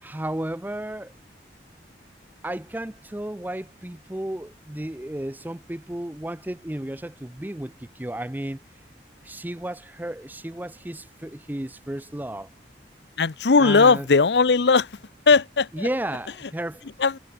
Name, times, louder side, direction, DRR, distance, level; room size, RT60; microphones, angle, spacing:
voice 1, 0.0-1.1 2.4-8.6 9.2-12.5 13.6-14.1 15.7-16.9, right 1 dB, 10° right, 0.5 m, -33 dB
voice 2, 13.2-14.9 15.3-15.9 17.0-17.2, left 4 dB, 75° left, 0.7 m, -18 dB
head